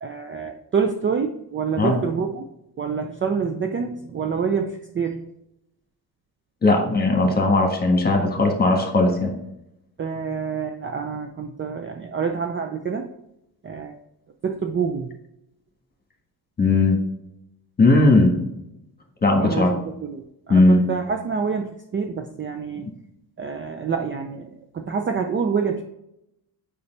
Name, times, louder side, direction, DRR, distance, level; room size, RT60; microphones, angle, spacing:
voice 1, 0.0-2.5 2.8-5.2 10.0-13.1 13.6-14.0 14.4-15.1 19.4-22.9 23.4-25.8, right 6 dB, 30° right, 5 dB, 0.5 m, -27 dB
voice 2, 6.6-9.3 16.6-17.0 17.8-18.4 19.2-19.7 20.5-20.8, left 2 dB, 25° left, 2 dB, 1.5 m, -17 dB
6.9 x 5.3 x 3.3 m, 0.84 s
cardioid pair, 115°, 37 cm